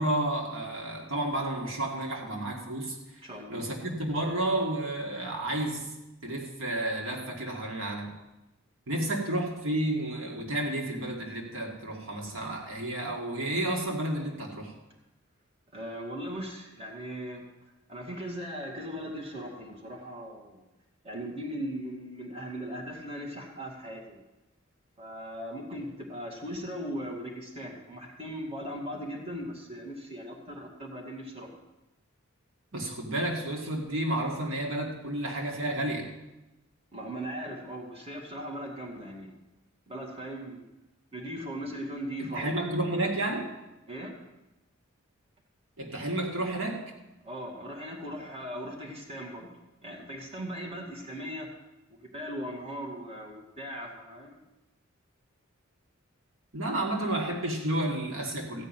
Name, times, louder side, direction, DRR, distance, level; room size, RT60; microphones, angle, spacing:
voice 1, 0.0-3.0 3.5-5.9 6.2-8.2 8.9-14.7 32.7-36.1 42.2-43.5 45.8-46.8 56.5-58.6, right 1 dB, 75° right, 0 dB, 2.0 m, -31 dB
voice 2, 3.2-3.6 15.7-17.5 17.9-20.6 21.0-24.2 25.0-31.6 36.9-39.3 39.9-40.7 41.1-42.6 43.9-44.1 47.2-49.5 49.8-51.5 52.0-54.4, equal, 30° right, -1 dB, 2.0 m, -38 dB
15.0 x 5.3 x 9.1 m, 1.0 s
head